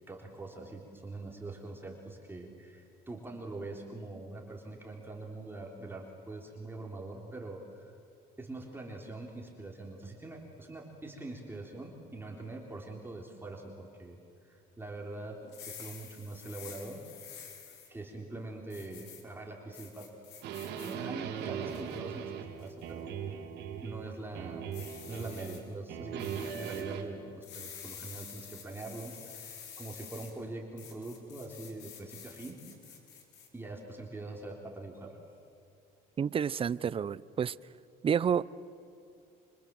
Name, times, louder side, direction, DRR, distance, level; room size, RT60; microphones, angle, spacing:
voice 1, 0.1-8.0 8.4-17.1 17.9-20.1 20.8-23.1 23.8-24.7 25.1-32.6 33.5-35.2, right 2 dB, 15° right, 0 dB, 3.6 m, -43 dB
sound 1, 15.4-17.9 18.7-19.2 19.7-21.0 21.4-22.0 22.6-22.9 24.7-25.6 26.2-26.8 27.4-30.3 30.8-33.5, left 8 dB, 85° left, 4.7 m, -49 dB
sound 2, 20.4-24.1 24.3-25.6 25.9-27.0, right 8 dB, 85° right, 3.0 m, -39 dB
voice 2, 36.2-37.5 38.0-38.4, right 7 dB, 35° right, 19 dB, 0.6 m, -29 dB
29.5 x 25.5 x 7.7 m, 2.6 s
cardioid pair, 110°, 17 cm